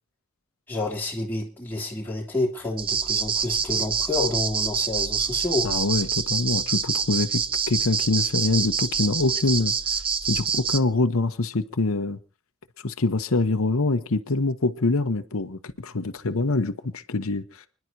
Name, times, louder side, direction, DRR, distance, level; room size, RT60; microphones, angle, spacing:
voice 1, 0.7-5.7, left 2 dB, 10° left, 3.1 m, -29 dB
sound 1, 2.8-10.8, right 6 dB, 25° right, 0.6 m, -26 dB
voice 2, 5.6-9.7 10.2-12.2 12.8-17.7, left 3 dB, 90° left, 0.9 m, -25 dB
29.5 x 11.0 x 2.7 m
head